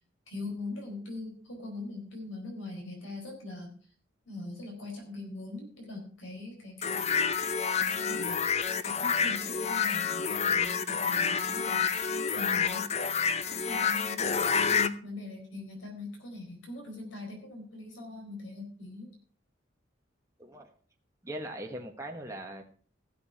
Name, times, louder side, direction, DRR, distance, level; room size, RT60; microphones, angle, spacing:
voice 1, 0.3-3.8 4.3-7.2 7.8-8.4 8.8-11.9 12.3-12.9 13.6-19.2, left 2 dB, 90° left, 1 dB, 4.4 m, -41 dB
sound 1, 6.8-14.9, left 6 dB, 35° left, 0.6 m, -28 dB
voice 2, 21.2-22.6, right 1 dB, 15° right, 1 dB, 1.3 m, -40 dB
15.5 x 7.0 x 5.7 m, 0.42 s
head